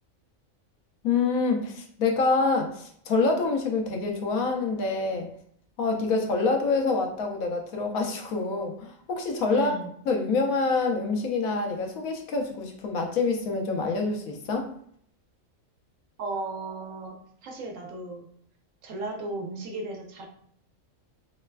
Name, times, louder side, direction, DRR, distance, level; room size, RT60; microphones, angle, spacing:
voice 1, 1.0-5.3 5.8-9.8 10.1-14.7, left 3 dB, 90° left, 3 dB, 1.1 m, -26 dB
voice 2, 9.5-9.9 16.2-18.3 18.8-20.3, right 2 dB, 70° right, 2 dB, 1.0 m, -35 dB
3.1 x 3.1 x 2.2 m, 0.65 s
omnidirectional pair, 1.4 m